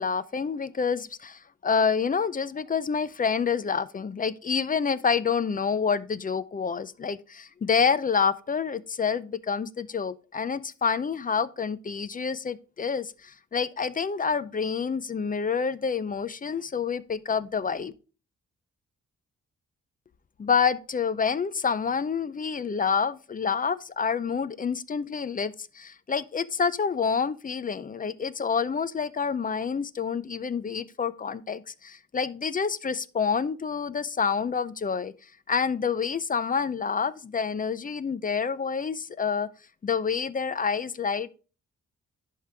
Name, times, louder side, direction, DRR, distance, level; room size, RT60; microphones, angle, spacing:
voice 1, 0.0-17.9 20.4-35.1 35.5-39.5 39.8-41.3, left 6 dB, 30° left, 0.4 m, -28 dB
11.0 x 3.7 x 3.3 m
cardioid pair, 90°, 29 cm